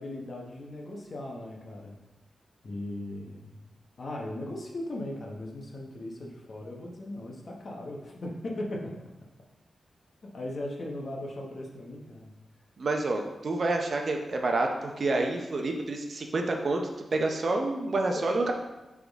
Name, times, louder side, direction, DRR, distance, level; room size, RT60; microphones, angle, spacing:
voice 1, 0.0-2.0 2.6-3.7 4.0-8.9 10.3-12.3 18.1-18.2, left 1 dB, 45° left, -1 dB, 1.0 m, -38 dB
voice 2, 12.8-18.5, right 2 dB, 45° right, 3 dB, 0.6 m, -28 dB
7.9 x 3.6 x 3.5 m, 1.1 s
wide cardioid pair, 160°, 0 cm